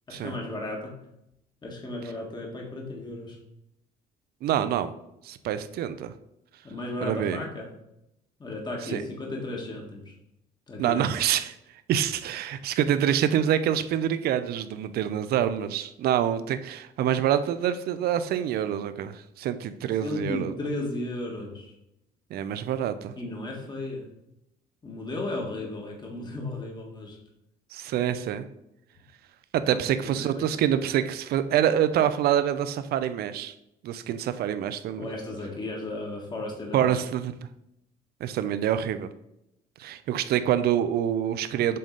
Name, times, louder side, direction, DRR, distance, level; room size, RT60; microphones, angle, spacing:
voice 1, 0.1-1.0 1.6-3.4 6.6-7.7 8.4-10.1 10.7-11.0 20.0-21.7 23.2-24.1 24.8-27.2 29.7-30.5 35.0-37.0, left 2 dB, 25° left, 0 dB, 1.6 m, -35 dB
voice 2, 4.4-4.9 5.2-6.1 7.0-7.4 8.8-9.0 10.8-11.6 11.9-20.5 22.3-23.1 27.7-28.4 29.5-33.5 33.8-35.1 36.7-37.3 38.2-39.1 39.8-41.8, right 10 dB, 65° right, 11 dB, 0.6 m, -26 dB
7.7 x 3.6 x 3.9 m, 0.83 s
cardioid pair, 110°, 17 cm